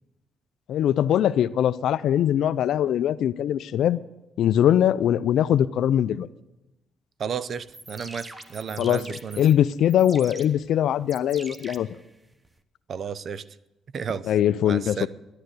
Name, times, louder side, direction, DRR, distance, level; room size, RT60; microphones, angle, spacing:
voice 1, 0.7-4.0 4.4-6.3 8.8-9.0 9.4-11.9 14.3-15.1, left 10 dB, 75° left, 16 dB, 0.5 m, -21 dB
voice 2, 7.2-9.5 12.9-13.4 13.9-14.3 14.6-15.1, right 7 dB, 55° right, 16 dB, 0.6 m, -33 dB
sound 1, 7.6-12.6, right 2 dB, 20° right, 0.9 m, -44 dB
11.5 x 9.0 x 9.5 m, 0.99 s
cardioid pair, 90°, 0 cm